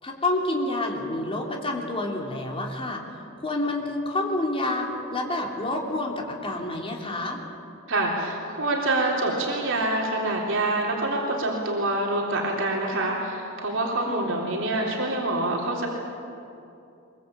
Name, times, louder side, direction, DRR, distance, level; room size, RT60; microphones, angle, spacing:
voice 1, 0.0-3.0 3.4-7.4 14.0-14.3, left 2 dB, 25° left, 1 dB, 3.3 m, -28 dB
voice 2, 7.9-15.9, right 2 dB, 65° right, -1 dB, 3.5 m, -26 dB
22.5 x 22.5 x 8.6 m, 2.7 s
head